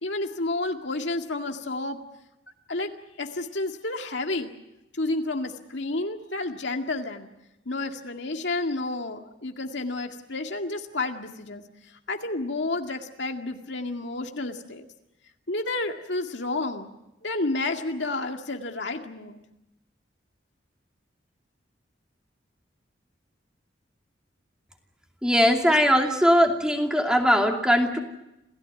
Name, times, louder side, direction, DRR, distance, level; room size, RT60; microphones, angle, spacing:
voice 1, 0.0-2.0 2.7-2.9 3.2-4.6 4.9-7.3 7.7-14.9 15.5-16.9 17.2-19.4, left 2 dB, 70° left, 4 dB, 2.1 m, -30 dB
voice 2, 25.2-28.0, equal, 5° right, 2 dB, 2.6 m, -20 dB
27.5 x 17.0 x 9.5 m, 0.92 s
head